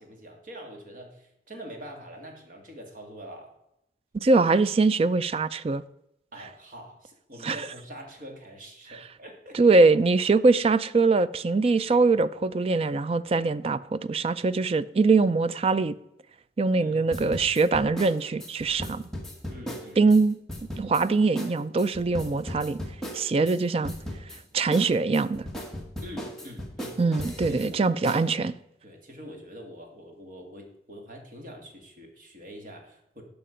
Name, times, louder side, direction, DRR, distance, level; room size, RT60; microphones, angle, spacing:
voice 1, 0.0-3.5 6.3-9.8 16.7-17.3 19.5-20.0 26.0-27.0 27.5-28.3 28.8-33.2, equal, 50° right, 2.0 m, -44 dB
voice 2, 4.1-5.8 7.4-7.6 9.5-15.9 16.6-19.1 20.0-20.4 20.8-22.8 23.1-23.9 24.5-25.5 27.0-28.5, right 3 dB, 35° right, 0.3 m, -22 dB
sound 1, 17.1-20.2 20.5-21.0 21.4-21.5 21.8-23.6 23.8-24.4 24.7-27.7 28.0-28.2, equal, 5° left, 1.4 m, -36 dB
11.0 x 5.7 x 5.0 m
head